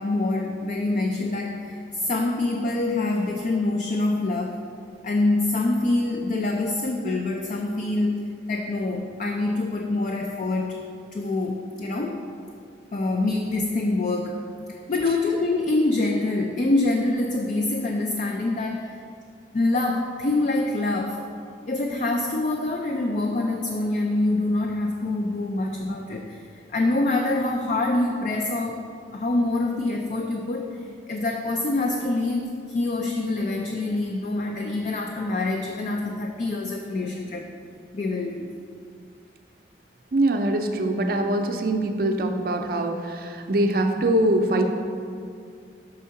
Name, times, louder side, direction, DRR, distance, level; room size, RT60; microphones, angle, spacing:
voice 1, 0.0-4.6 5.0-10.8 11.1-12.2 12.9-19.0 19.5-21.2 21.7-26.4 26.7-37.5 37.9-38.5, left 2 dB, 45° left, 2 dB, 0.4 m, -25 dB
voice 2, 40.1-44.6, right 1 dB, 55° right, 4 dB, 0.5 m, -23 dB
6.2 x 3.6 x 5.7 m, 2.3 s
head